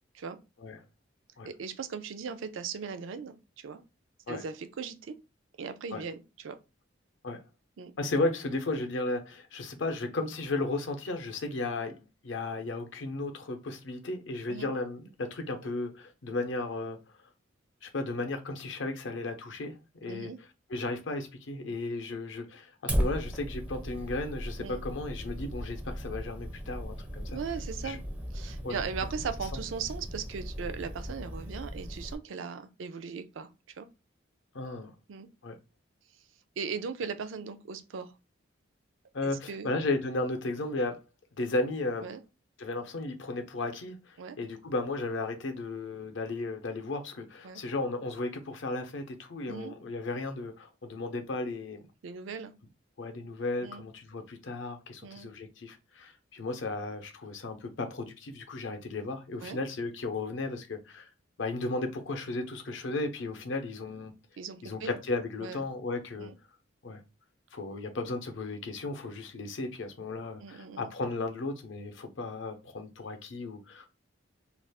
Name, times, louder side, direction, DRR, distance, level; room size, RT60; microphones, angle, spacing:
voice 1, 1.4-3.8 4.3-5.2 5.6-6.6 7.8-7.9 14.5-14.7 20.1-20.4 24.6-24.8 27.3-28.0 28.3-33.9 35.1-35.3 36.6-38.1 39.2-39.7 42.0-42.2 44.2-44.4 47.4-47.6 49.5-49.7 52.0-52.5 53.6-53.8 55.0-55.3 59.4-59.6 64.4-64.9 65.4-65.7 66.2-66.3 70.4-70.9, right 6 dB, 70° right, 0.4 m, -38 dB
voice 2, 8.0-17.0 17.8-19.7 20.0-20.3 20.7-27.4 27.8-28.0 28.6-28.8 34.5-34.9 35.4-35.6 39.1-41.0 41.4-42.1 42.6-51.8 53.0-61.1 61.4-64.1 64.6-66.3 66.8-67.0 67.5-73.9, left 2 dB, 65° left, 0.6 m, -35 dB
Fire, 22.9-32.1, equal, 5° right, 0.4 m, -36 dB
2.4 x 2.3 x 3.4 m
head